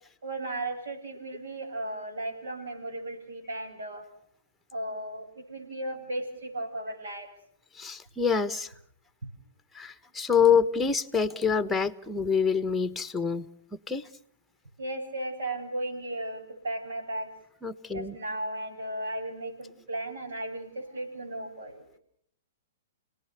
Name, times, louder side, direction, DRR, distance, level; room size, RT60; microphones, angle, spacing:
voice 1, 0.2-4.0 4.7-7.3 14.8-17.3 17.9-21.8, right 1 dB, 80° right, 3 dB, 7.8 m, -35 dB
voice 2, 7.8-8.7 9.7-13.4 13.9-14.0 17.6-18.1, left 6 dB, 5° left, 12 dB, 1.2 m, -26 dB
29.0 x 19.0 x 7.0 m, 0.67 s
hypercardioid pair, 120°, 0 cm